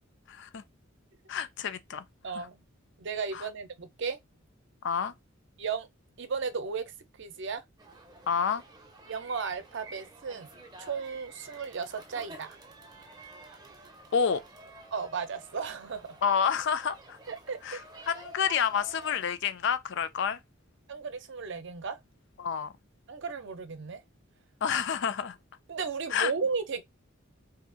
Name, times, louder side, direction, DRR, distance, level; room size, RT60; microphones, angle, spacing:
voice 1, 0.3-0.6 1.3-2.0 2.4-2.5 3.3-3.5 4.8-5.1 8.3-8.6 14.1-14.4 16.2-17.2 17.6-17.8 18.1-20.4 22.4-22.7 24.6-25.4 26.1-26.3, left 7 dB, 60° left, 0.4 m, -29 dB
voice 2, 2.2-2.6 3.0-4.2 5.6-5.9 6.2-6.9 7.2-7.6 9.1-10.5 10.8-12.6 14.9-16.2 17.3-17.9 20.9-22.0 23.1-24.0 25.7-26.8, right 5 dB, 60° right, 0.6 m, -35 dB
sound 1, 7.8-19.2, right 2 dB, 20° right, 0.6 m, -50 dB
2.7 x 2.4 x 3.7 m
head